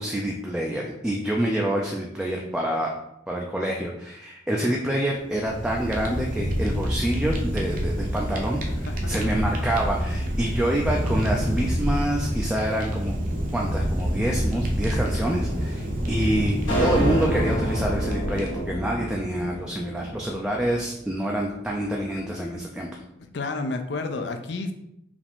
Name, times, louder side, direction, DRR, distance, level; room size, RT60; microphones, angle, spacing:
voice 1, 0.0-3.0 3.3-8.6 9.1-13.2 13.5-22.9, right 1 dB, 5° right, -2 dB, 0.3 m, -27 dB
Fire, 5.2-18.8, equal, 45° right, 0.6 m, -27 dB
voice 2, 8.8-9.3 23.3-24.7, left 3 dB, 60° left, 6 dB, 0.5 m, -31 dB
sound 1, 16.7-21.1, right 1 dB, 80° left, 1.4 m, -28 dB
4.9 x 2.5 x 3.5 m, 0.80 s
head